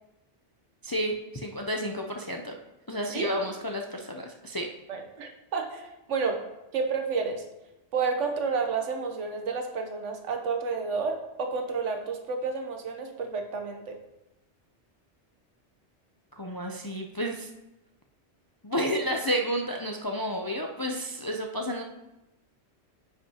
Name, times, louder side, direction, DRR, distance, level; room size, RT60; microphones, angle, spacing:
voice 1, 0.8-2.6 2.9-4.7 16.4-17.5 18.6-21.8, equal, 30° left, 2 dB, 0.4 m, -31 dB
voice 2, 4.9-6.4 6.7-7.4 7.9-13.9, right 5 dB, 85° right, 5 dB, 1.2 m, -30 dB
9.9 x 5.8 x 2.9 m, 0.95 s
omnidirectional pair, 1.2 m